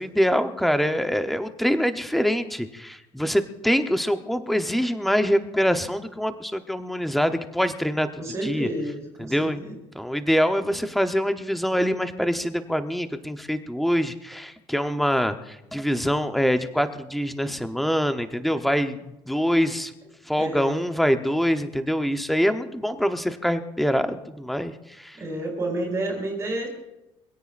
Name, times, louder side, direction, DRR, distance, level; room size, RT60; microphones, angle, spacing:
voice 1, 0.0-8.1 8.4-8.7 9.2-9.6 9.9-19.9 20.2-25.2, equal, ahead, 7 dB, 0.9 m, -24 dB
voice 2, 8.2-9.8 20.4-20.8 25.1-26.7, right 1 dB, 30° right, 0 dB, 4.3 m, -30 dB
25.0 x 17.0 x 2.6 m, 0.95 s
cardioid pair, 150°, 10 cm